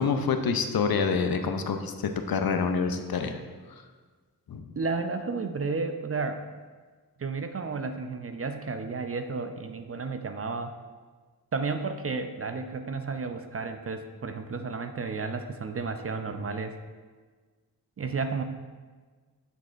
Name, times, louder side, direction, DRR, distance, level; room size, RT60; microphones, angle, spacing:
voice 1, 0.0-3.4 4.5-4.7, left 5 dB, 65° left, 7 dB, 0.5 m, -27 dB
voice 2, 4.8-6.4 7.2-10.7 11.5-16.8 18.0-18.4, right 4 dB, 40° right, 7 dB, 0.4 m, -32 dB
9.0 x 4.2 x 2.5 m, 1.4 s
wide cardioid pair, 75°, 38 cm